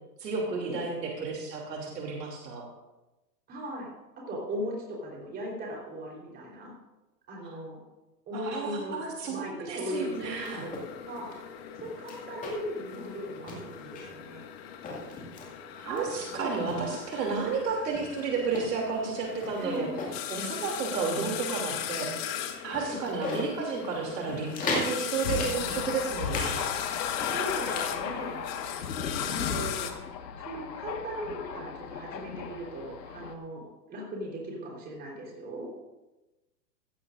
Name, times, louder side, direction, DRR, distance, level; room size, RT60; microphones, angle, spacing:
voice 1, 0.2-2.6 8.3-10.7 15.8-19.9 20.3-22.3 22.6-26.7, right 4 dB, 80° right, -1 dB, 2.9 m, -32 dB
voice 2, 3.5-3.9 4.3-6.7 7.3-7.8 8.3-9.0 9.3-11.3 11.8-14.5 19.6-19.9 22.8-23.0 27.3-28.4 29.2-29.9 30.4-35.7, equal, 20° right, -2 dB, 3.9 m, -38 dB
sound 1, 9.9-29.9, left 10 dB, 40° left, 1.1 m, -38 dB
sound 2, 10.2-10.9 11.2-11.4 11.8-12.8 13.0-13.2 13.5-14.2 14.7-15.5 16.0-16.9 17.4-17.5 17.9-20.2 20.6-20.8 21.2-21.8 22.2-22.3 22.7-23.5 23.9-24.0 24.3-24.9 25.3-26.5 26.8-27.9, left 3 dB, 15° left, 2.2 m, -37 dB
Thunder, 25.2-33.3, left 6 dB, 85° left, 1.7 m, -36 dB
16.0 x 14.0 x 2.6 m, 1.0 s
hypercardioid pair, 150°, 49 cm